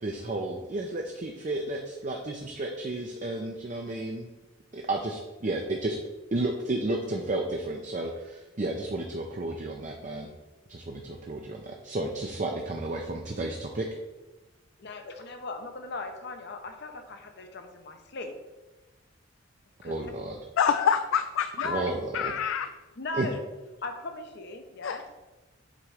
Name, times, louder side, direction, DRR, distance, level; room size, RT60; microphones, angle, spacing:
voice 1, 0.0-4.3 4.7-6.0 6.3-10.3 10.7-13.9 19.8-20.4 21.6-22.3 23.2-23.3, right 2 dB, 40° right, 2 dB, 0.5 m, -32 dB
voice 2, 14.8-18.4 19.8-20.1 21.6-21.9 23.0-23.4 23.8-25.0, left 3 dB, 55° left, 6 dB, 0.8 m, -38 dB
voice 3, 20.6-21.7 22.1-22.7 24.8-25.0, left 7 dB, 80° left, 9 dB, 0.3 m, -26 dB
7.5 x 3.1 x 4.9 m, 1.1 s
head